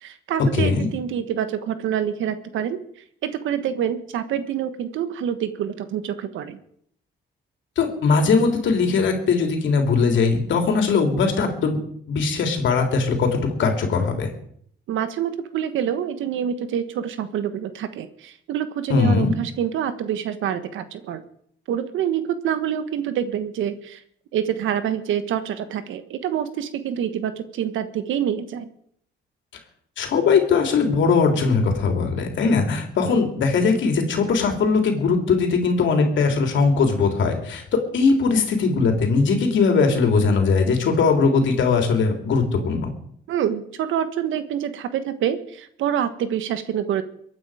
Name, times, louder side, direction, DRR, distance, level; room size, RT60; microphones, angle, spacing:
voice 1, 0.0-2.8 3.2-6.6 14.9-21.2 21.7-24.0 24.3-28.7 43.3-47.0, right 9 dB, 80° right, 11 dB, 1.3 m, -26 dB
voice 2, 0.5-0.9 7.8-11.8 12.1-14.3 18.9-19.3 30.0-37.6 37.9-42.9, left 4 dB, 70° left, 4 dB, 3.3 m, -20 dB
23.5 x 9.1 x 5.0 m, 0.67 s
cardioid pair, 90°, 20 cm